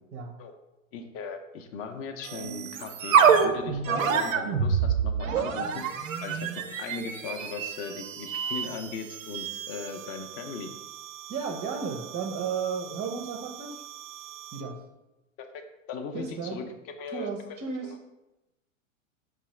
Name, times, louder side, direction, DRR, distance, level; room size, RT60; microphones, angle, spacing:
voice 1, 0.9-5.8 6.2-10.7 15.5-15.6 15.9-16.6 17.0-17.6 17.8-18.0, left 5 dB, 35° left, 5 dB, 0.5 m, -38 dB
sound 1, 2.2-14.7, right 6 dB, 80° right, 0.5 m, -29 dB
voice 2, 11.3-13.8 14.5-14.8 16.1-16.6 17.1-17.9, right 5 dB, 25° right, 1 dB, 0.5 m, -33 dB
4.7 x 2.4 x 3.0 m, 0.96 s
hypercardioid pair, 105°, 39 cm